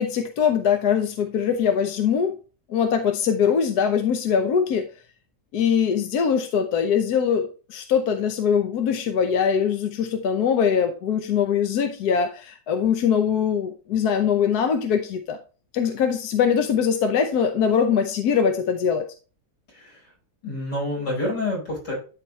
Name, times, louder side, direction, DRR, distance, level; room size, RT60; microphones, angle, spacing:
voice 1, 0.0-2.4 2.7-4.9 5.5-15.4 15.7-19.1, left 7 dB, 70° left, 6 dB, 1.3 m, -22 dB
voice 2, 19.7-20.1 20.4-21.9, left 2 dB, 90° left, -3 dB, 5.5 m, -28 dB
11.5 x 4.2 x 3.1 m, 0.36 s
omnidirectional pair, 1.8 m